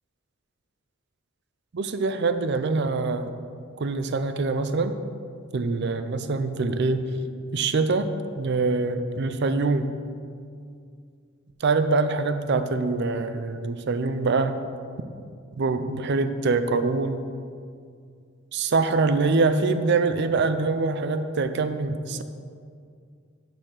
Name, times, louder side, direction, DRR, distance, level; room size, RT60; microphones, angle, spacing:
voice 1, 1.7-3.3 3.8-4.9 5.5-7.1 7.5-8.1 8.4-9.9 11.6-14.6 15.6-17.3 18.5-22.2, right 3 dB, 60° right, 10 dB, 0.5 m, -24 dB
6.8 x 5.7 x 6.3 m, 2.2 s
head